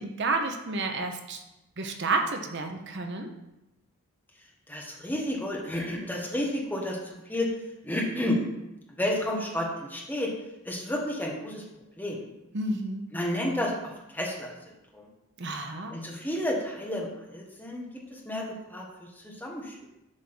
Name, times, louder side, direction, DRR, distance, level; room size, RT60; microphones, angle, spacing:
voice 1, 0.0-1.4 1.8-3.3 12.5-13.1 15.4-16.0, right 3 dB, 50° right, 4 dB, 0.7 m, -30 dB
voice 2, 4.7-7.6 7.8-8.4 9.0-10.3 10.6-11.6 12.0-12.2 13.1-15.1 15.9-19.9, left 1 dB, 10° left, -2 dB, 1.1 m, -31 dB
7.5 x 3.6 x 6.0 m, 0.93 s
head